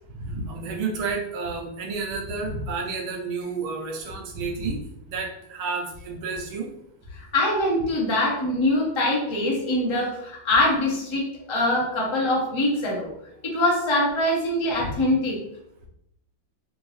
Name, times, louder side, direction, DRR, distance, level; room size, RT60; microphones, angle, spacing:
voice 1, 0.1-4.8 5.1-6.7 14.8-14.9, right 4 dB, 80° right, 1 dB, 1.6 m, -30 dB
voice 2, 7.3-13.1 13.4-15.4, left 1 dB, 30° left, -2 dB, 0.5 m, -23 dB
4.5 x 2.6 x 3.1 m, 0.77 s
omnidirectional pair, 2.2 m